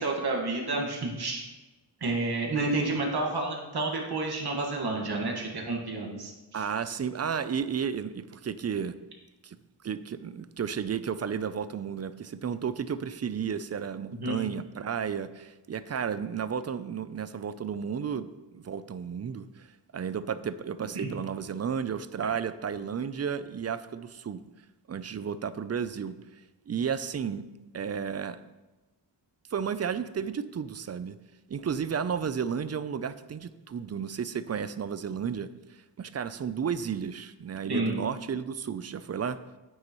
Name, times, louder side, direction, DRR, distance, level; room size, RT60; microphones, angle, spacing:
voice 1, 0.0-1.4 2.0-6.6 14.2-14.4 20.9-21.1 37.7-38.0, right 2 dB, 65° right, 0 dB, 1.6 m, -30 dB
voice 2, 6.5-8.9 9.4-9.6 9.8-18.3 18.5-19.7 19.9-24.4 24.9-26.2 26.7-27.5 27.7-28.4 29.5-31.2 31.5-39.4, right 7 dB, 40° right, 14 dB, 0.4 m, -33 dB
9.5 x 9.5 x 3.0 m, 1.1 s
wide cardioid pair, 145°, 42 cm